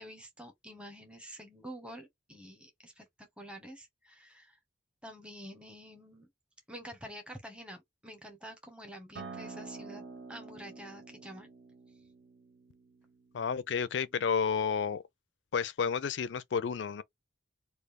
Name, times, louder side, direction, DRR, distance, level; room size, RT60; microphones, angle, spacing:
voice 1, 0.0-4.6 5.0-6.3 6.7-10.0 10.3-11.5, equal, 5° right, 0.9 m, -48 dB
Acoustic guitar, 9.2-14.4, right 4 dB, 70° right, 0.7 m, -48 dB
voice 2, 13.3-15.0 15.5-17.0, left 6 dB, 70° left, 0.4 m, -31 dB
3.2 x 2.4 x 3.5 m
head